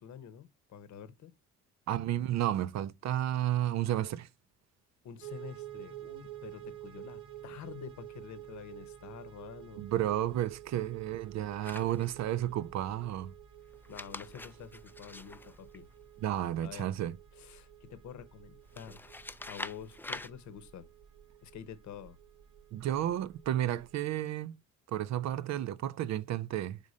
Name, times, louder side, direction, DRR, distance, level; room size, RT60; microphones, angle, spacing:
voice 1, 0.0-1.3 5.0-9.9 13.9-15.9 16.6-16.9 17.3-19.1 19.5-20.9 21.4-22.2, left 8 dB, 70° left, 0.9 m, -48 dB
voice 2, 1.9-4.3 9.8-13.3 16.2-17.2 22.7-24.6 24.9-26.8, right 12 dB, 65° right, 0.4 m, -32 dB
sound 1, 5.2-23.9, right 12 dB, 90° right, 1.2 m, -51 dB
sound 2, 11.6-12.4 13.7-16.3 18.7-20.3, left 2 dB, 5° left, 0.3 m, -45 dB
5.0 x 3.8 x 5.2 m
cardioid pair, 90°, 30 cm